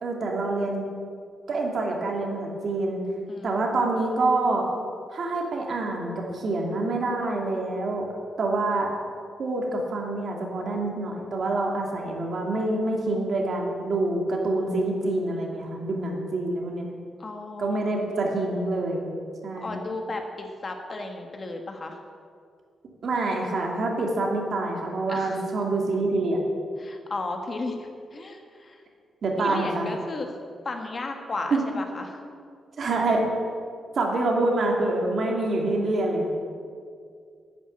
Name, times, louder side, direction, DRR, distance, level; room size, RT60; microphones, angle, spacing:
voice 1, 0.0-0.8 1.5-3.0 3.4-4.7 5.1-8.1 8.4-8.9 9.4-16.9 17.6-19.1 19.4-19.8 23.0-26.4 29.2-29.9 31.5-31.6 32.8-33.3 33.9-36.3, right 2 dB, 55° right, 0 dB, 2.8 m, -26 dB
voice 2, 3.3-3.6 17.2-18.3 19.6-22.0 25.1-25.4 26.8-28.8 29.4-30.4 30.6-32.2, left 2 dB, 35° left, 4 dB, 1.6 m, -34 dB
11.0 x 10.5 x 8.6 m, 2.2 s
wide cardioid pair, 140°, 0 cm